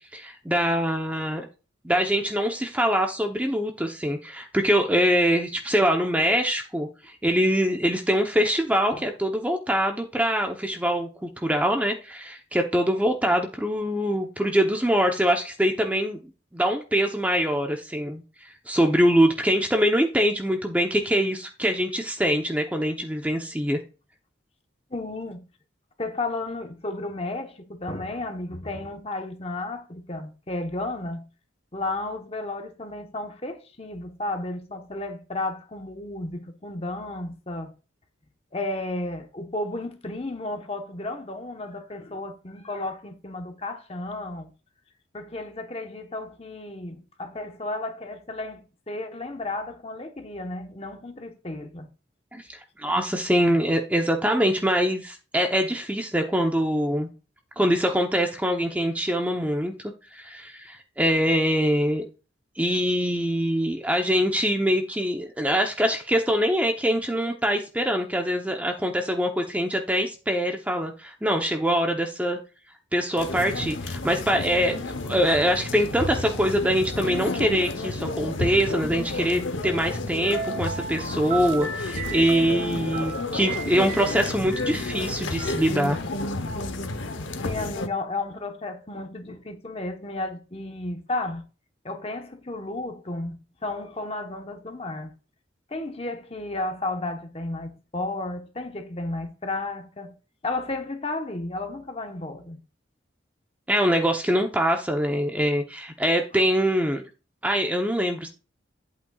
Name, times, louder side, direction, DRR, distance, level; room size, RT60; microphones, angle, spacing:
voice 1, 0.1-1.5 1.8-16.2 16.5-18.2 18.7-23.8 52.3-52.4 52.8-57.1 57.6-62.0 62.6-72.4 72.9-86.0 103.7-107.0 107.4-108.3, equal, 10° right, 0.8 m, -24 dB
voice 2, 24.9-25.4 26.0-31.2 31.7-37.7 38.5-44.5 45.1-51.9 87.4-91.4 91.8-95.1 95.7-100.2 100.4-102.6, left 2 dB, 30° left, 1.1 m, -33 dB
sound 1, 73.2-87.9, left 2 dB, 85° left, 0.9 m, -31 dB
sound 2, 80.2-85.5, right 4 dB, 50° right, 1.7 m, -35 dB
11.0 x 8.4 x 2.4 m
head